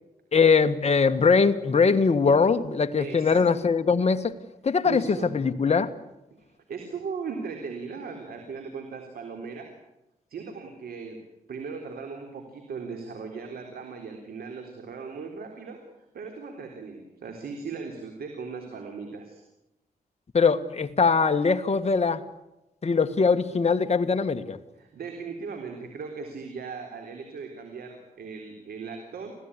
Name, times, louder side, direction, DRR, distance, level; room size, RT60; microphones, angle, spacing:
voice 1, 0.3-4.3 4.6-5.9 20.3-22.2 22.8-24.6, left 5 dB, 45° left, 1.7 m, -22 dB
voice 2, 3.0-3.4 4.8-5.3 6.4-9.7 10.3-11.2 11.5-15.8 16.1-19.4 24.8-29.4, right 5 dB, 85° right, 3.9 m, -38 dB
26.5 x 17.0 x 9.9 m
cardioid pair, 75°, 15 cm